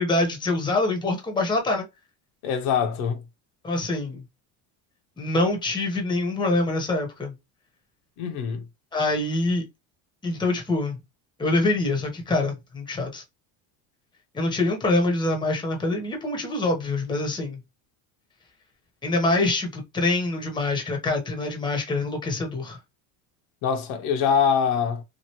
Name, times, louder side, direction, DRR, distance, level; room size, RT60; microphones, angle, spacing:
voice 1, 0.0-1.8 3.6-4.2 5.2-7.3 8.9-9.6 10.2-11.0 11.4-13.2 14.3-17.6 19.0-22.8, left 2 dB, 10° left, 0.8 m, -25 dB
voice 2, 2.4-3.2 8.2-8.7 23.6-25.0, left 7 dB, 80° left, 0.9 m, -24 dB
3.1 x 2.5 x 2.8 m
cardioid pair, 120°, 44 cm